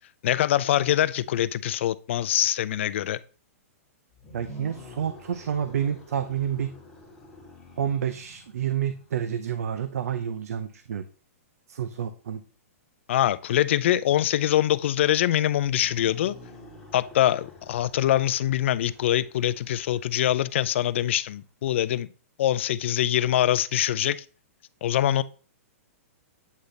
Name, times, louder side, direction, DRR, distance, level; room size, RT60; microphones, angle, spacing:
voice 1, 0.2-3.2 13.1-16.4 16.9-22.1 22.4-24.2 24.8-25.2, left 12 dB, 55° left, 0.4 m, -24 dB
sound 1, 4.1-9.3 15.5-21.2, equal, 5° left, 1.7 m, -48 dB
voice 2, 4.3-6.7 7.8-11.0 11.7-12.4, right 9 dB, 80° right, 0.5 m, -29 dB
8.3 x 3.2 x 3.9 m
hypercardioid pair, 165°, 8 cm